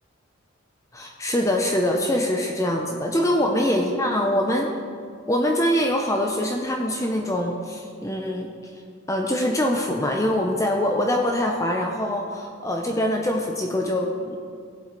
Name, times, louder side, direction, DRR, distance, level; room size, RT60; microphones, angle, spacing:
voice 1, 0.9-4.7 5.3-8.5 9.1-14.4, left 1 dB, 15° left, 1 dB, 0.6 m, -24 dB
17.0 x 7.8 x 4.0 m, 2.2 s
head